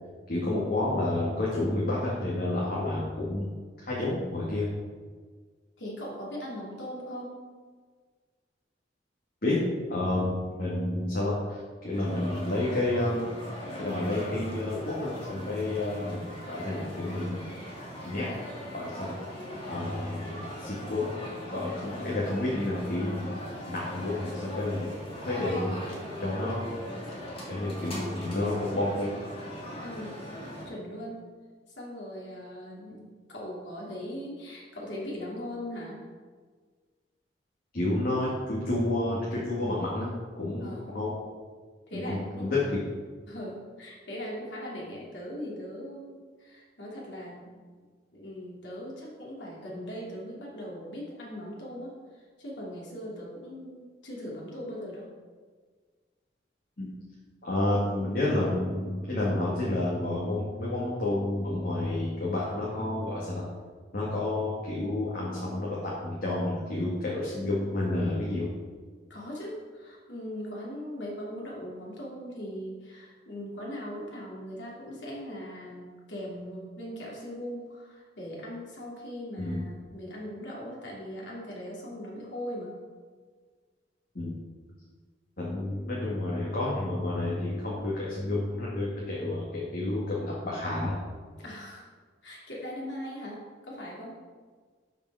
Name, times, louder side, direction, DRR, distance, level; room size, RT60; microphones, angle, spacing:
voice 1, 0.3-3.5 3.9-4.7 9.4-9.6 9.9-10.3 10.6-13.2 13.8-17.5 18.0-18.3 18.7-19.1 19.7-21.1 21.5-23.4 23.7-24.9 25.3-25.8 26.2-26.7 27.5-29.2 37.7-41.1 41.9-42.6 56.8-56.9 57.4-63.4 63.9-68.5 79.4-79.6 84.2-84.3 85.4-91.0, left 2 dB, 55° left, -6 dB, 2.0 m, -30 dB
voice 2, 5.8-7.5 29.8-30.2 30.6-31.2 31.7-36.0 40.6-40.9 41.9-42.6 43.3-47.6 48.1-55.1 69.1-82.8 91.4-91.9 92.2-94.2, equal, 85° left, -4 dB, 2.9 m, -40 dB
sound 1, 11.9-30.7, equal, 30° left, 2.4 m, -40 dB
12.0 x 5.3 x 4.9 m, 1.5 s
head